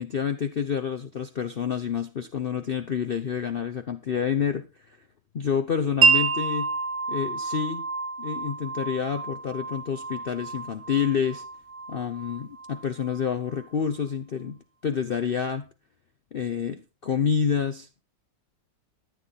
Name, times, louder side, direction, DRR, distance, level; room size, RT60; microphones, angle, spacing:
voice 1, 0.0-5.0 5.3-6.7 7.1-7.9 8.2-11.4 11.9-15.7 16.3-18.0, left 7 dB, 80° left, 9 dB, 0.5 m, -28 dB
Wind chime, 6.0-13.7, right 5 dB, 55° right, 0.9 m, -28 dB
14.0 x 9.3 x 4.1 m, 0.31 s
omnidirectional pair, 2.0 m